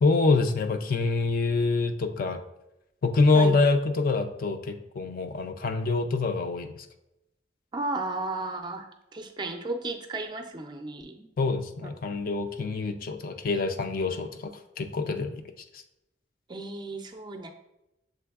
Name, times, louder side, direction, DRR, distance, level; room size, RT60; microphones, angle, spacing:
voice 1, 0.0-2.4 3.0-6.9 11.4-14.5 14.8-15.4, left 3 dB, 50° left, 7 dB, 0.3 m, -25 dB
voice 2, 7.7-11.3 16.5-17.5, right 2 dB, 25° right, 6 dB, 0.4 m, -34 dB
6.8 x 3.3 x 2.3 m, 0.88 s
head